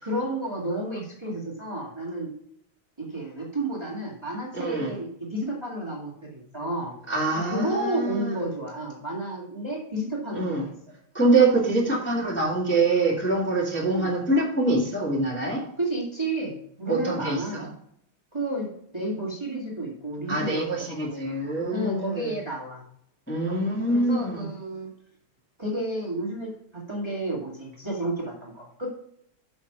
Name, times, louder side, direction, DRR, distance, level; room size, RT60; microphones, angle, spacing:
voice 1, 0.0-2.3 3.0-6.9 7.5-10.7 11.8-11.9 13.8-14.1 15.8-17.7 18.3-18.7 18.9-21.2 21.7-22.8 23.9-24.9 25.6-28.9, right 1 dB, 15° right, -3 dB, 2.0 m, -31 dB
voice 2, 4.5-4.9 7.1-8.4 10.3-10.6 11.1-15.6 16.9-17.7 20.3-22.3 23.3-24.4, right 2 dB, 5° left, -4 dB, 1.8 m, -24 dB
6.5 x 6.4 x 6.0 m, 0.69 s
omnidirectional pair, 2.4 m